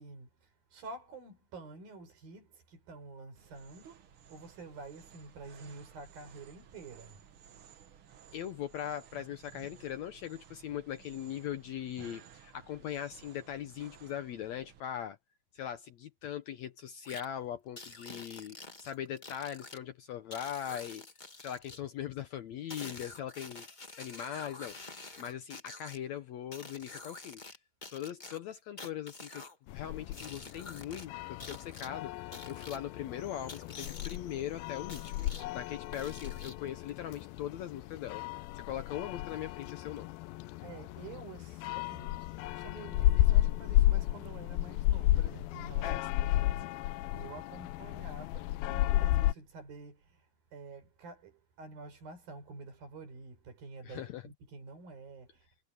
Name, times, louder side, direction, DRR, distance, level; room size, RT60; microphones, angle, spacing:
voice 1, 0.0-7.2 40.6-50.3 50.5-55.5, right 3 dB, 75° right, 7.0 m, -49 dB
sound 1, 3.3-14.8, right 8 dB, 55° right, 1.5 m, -57 dB
voice 2, 8.3-15.2 15.5-21.1 21.4-23.7 24.0-27.4 27.9-40.1 45.8-46.1 53.8-54.2, left 10 dB, 70° left, 1.7 m, -40 dB
sound 2, 17.0-17.2 17.8-19.8 20.3-21.8 22.7-26.0 26.5-27.6 27.8-29.5 30.1-31.0 31.4-31.9 32.3-32.8 33.5-34.2 34.9-35.4 35.9-36.7, left 3 dB, 50° left, 0.5 m, -47 dB
sound 3, 29.7-49.3, left 15 dB, 90° left, 2.5 m, -32 dB
omnidirectional pair, 4.1 m